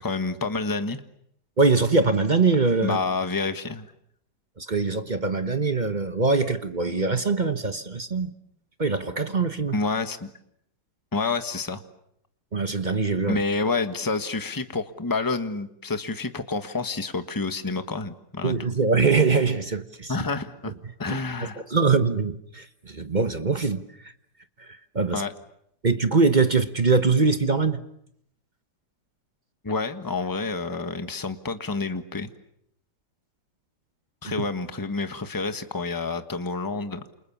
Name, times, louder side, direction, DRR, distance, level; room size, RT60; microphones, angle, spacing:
voice 1, 0.0-1.0 2.8-3.9 9.7-10.3 11.1-11.8 13.3-18.6 20.1-20.7 21.0-21.6 25.1-25.3 29.6-32.3 34.2-37.0, left 3 dB, 15° left, 1.3 m, -28 dB
voice 2, 1.6-3.0 4.6-8.3 8.8-9.8 12.5-13.4 18.4-20.1 21.7-24.1 24.6-25.2 25.8-27.8, right 4 dB, 30° right, 1.1 m, -23 dB
28.5 x 28.5 x 7.2 m
omnidirectional pair, 2.0 m